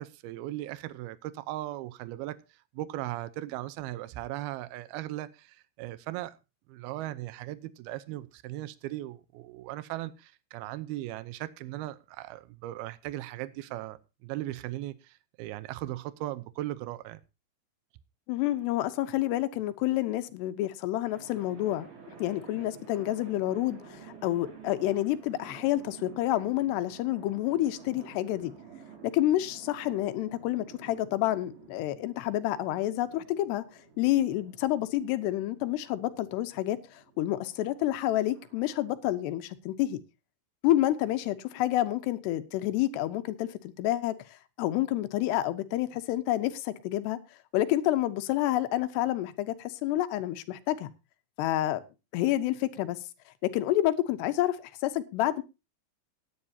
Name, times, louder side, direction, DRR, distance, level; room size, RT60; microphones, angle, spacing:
voice 1, 0.0-6.4 6.7-17.2, right 15 dB, 85° right, 2.3 m, -38 dB
voice 2, 18.3-21.9 22.2-28.5 29.0-33.6 34.0-40.0 40.6-47.2 47.5-50.9 51.4-51.8 52.1-53.0 53.4-55.4, left 14 dB, 75° left, 2.8 m, -29 dB
sound 1, 21.1-38.9, right 6 dB, 45° right, 4.2 m, -51 dB
19.0 x 9.7 x 2.8 m
omnidirectional pair, 5.2 m